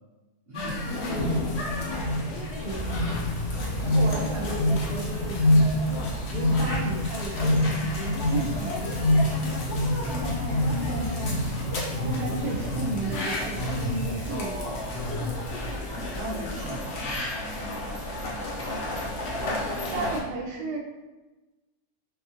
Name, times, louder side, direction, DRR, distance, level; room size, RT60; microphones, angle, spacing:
sound 1, 0.5-20.2, left 1 dB, 55° left, 0.8 m, -27 dB
voice 1, 0.5-2.1 12.3-12.9 15.8-17.9 18.6-18.9, equal, 45° right, -6 dB, 0.9 m, -39 dB
voice 2, 2.6-3.1 3.8-6.0 6.3-9.6 10.1-11.6 12.0-14.8 16.2-16.4 19.2-19.3 19.8-20.8, right 2 dB, 90° right, 0 dB, 1.2 m, -34 dB
Aircraft, 2.7-14.3, right 2 dB, 75° left, 1.8 m, -40 dB
4.1 x 2.4 x 2.8 m, 1.1 s
omnidirectional pair, 1.8 m